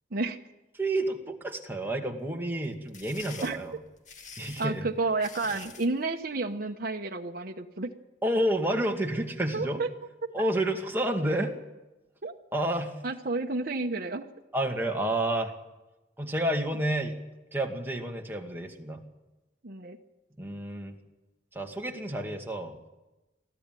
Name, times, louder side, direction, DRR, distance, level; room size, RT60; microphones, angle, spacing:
voice 1, 0.8-3.8 4.4-4.9 8.2-9.8 10.3-11.5 12.5-12.9 14.5-15.5 16.2-17.1 17.5-19.0 20.4-20.9 21.5-22.8, right 1 dB, 10° right, 1 dB, 2.2 m, -29 dB
sound 1, 2.6-5.9, left 5 dB, 45° left, 2.0 m, -46 dB
voice 2, 4.6-7.9 9.5-9.9 11.1-11.2 12.2-12.3 13.0-14.3 19.6-20.0, right 3 dB, 55° right, 3 dB, 1.1 m, -31 dB
22.0 x 14.0 x 9.1 m, 1.0 s
head